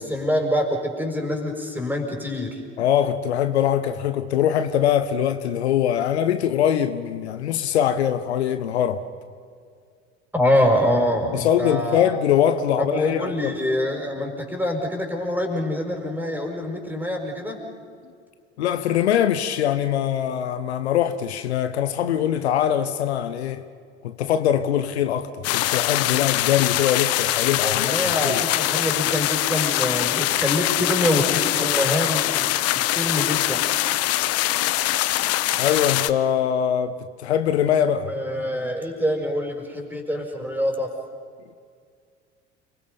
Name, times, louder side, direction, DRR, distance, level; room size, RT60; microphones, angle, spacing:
voice 1, 0.0-2.6 10.3-12.1 12.8-17.6 27.4-32.5 32.9-33.6 38.1-40.9, left 1 dB, 5° right, 5.4 m, -25 dB
voice 2, 2.8-9.0 11.3-13.5 18.6-23.6 24.0-28.4 35.6-38.1, left 10 dB, 75° left, 1.0 m, -22 dB
sound 1, 25.4-36.1, left 15 dB, 45° left, 0.8 m, -23 dB
29.5 x 22.5 x 5.4 m
figure-of-eight pair, 65°, 33 cm